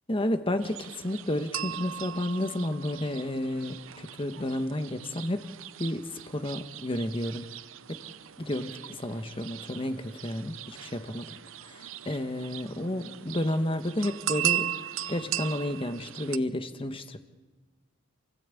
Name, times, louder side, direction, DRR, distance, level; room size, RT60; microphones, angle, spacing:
voice 1, 0.1-5.5 5.8-7.5 7.9-8.0 8.4-11.4 11.6-14.7 15.1-17.2, left 1 dB, 25° left, 9 dB, 1.2 m, -31 dB
sound 1, 0.6-16.4, right 12 dB, 70° right, 0.7 m, -38 dB
28.5 x 16.0 x 8.4 m, 1.3 s
head